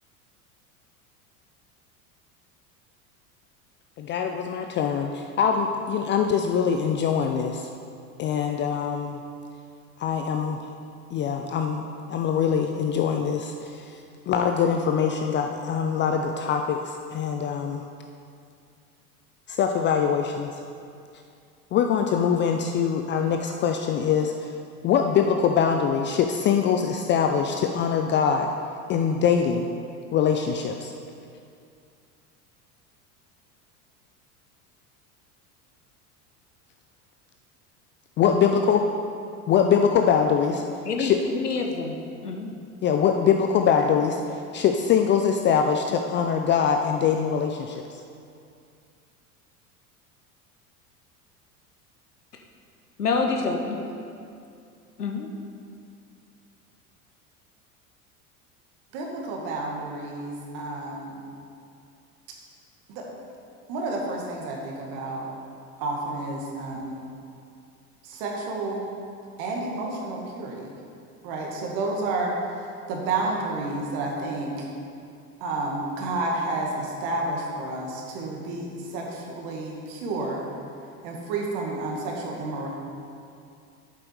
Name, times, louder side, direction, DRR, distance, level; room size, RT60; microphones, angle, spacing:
voice 1, 4.0-7.7 8.2-9.2 10.0-10.6 11.1-11.8 12.1-14.0 14.3-17.8 19.5-20.5 21.7-24.5 24.8-28.5 28.9-29.7 30.1-30.9 38.2-38.8 39.5-40.6 41.0-41.2 42.8-47.8, left 7 dB, 25° left, 0.4 m, -23 dB
voice 2, 40.8-41.9 42.2-42.5 53.0-53.8 55.0-55.3, left 4 dB, 90° left, 1.0 m, -27 dB
voice 3, 58.9-61.2 62.9-63.0 63.7-65.3 65.8-67.0 68.0-68.8 69.4-70.6 71.2-72.3 72.9-74.7 75.4-80.4 81.0-82.7, right 2 dB, 55° right, 1.9 m, -30 dB
8.2 x 7.5 x 4.7 m
hypercardioid pair, 80°, 45 cm